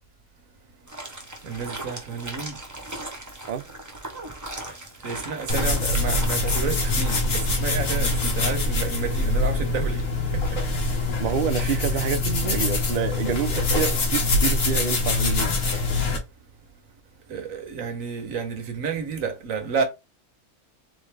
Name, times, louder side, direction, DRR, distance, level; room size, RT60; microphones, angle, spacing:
sound 1, 0.9-8.4, right 1 dB, 15° right, 0.9 m, -38 dB
voice 1, 1.4-2.6 5.0-10.0 11.6-12.1 17.3-19.8, right 6 dB, 85° right, 1.4 m, -30 dB
sound 2, 5.5-16.2, left 2 dB, 80° left, 1.7 m, -24 dB
voice 2, 11.2-15.9, right 8 dB, 55° right, 0.6 m, -28 dB
3.9 x 3.8 x 3.3 m
omnidirectional pair, 1.4 m